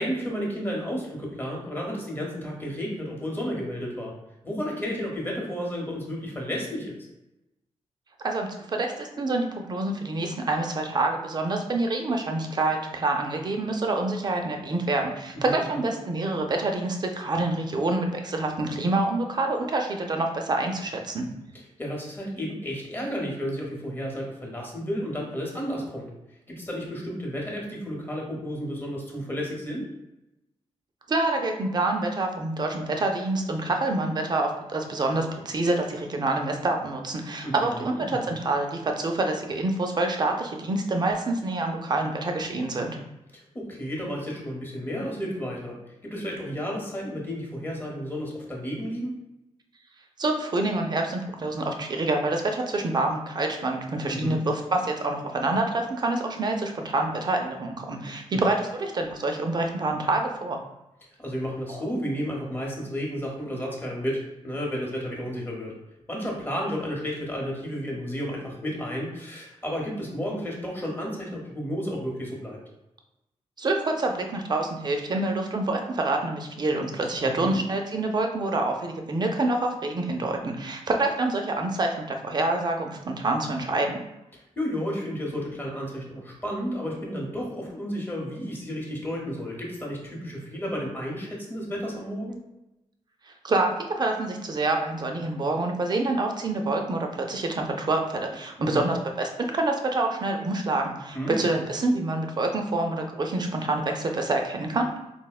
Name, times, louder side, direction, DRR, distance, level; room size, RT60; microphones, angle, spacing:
voice 1, 0.0-4.1 4.4-6.9 15.4-15.9 21.8-26.1 26.5-29.9 37.4-38.4 43.3-45.8 46.0-49.1 54.1-54.4 58.3-58.4 61.2-65.7 66.1-72.6 77.2-77.6 84.3-92.4 98.6-98.9 101.1-101.5, equal, 20° left, -2 dB, 0.8 m, -32 dB
voice 2, 8.2-21.3 31.1-43.0 50.2-60.6 61.7-61.9 73.6-84.0 93.4-104.9, right 2 dB, 35° right, 3 dB, 0.4 m, -27 dB
4.1 x 2.1 x 2.3 m, 0.93 s
wide cardioid pair, 115°, 12 cm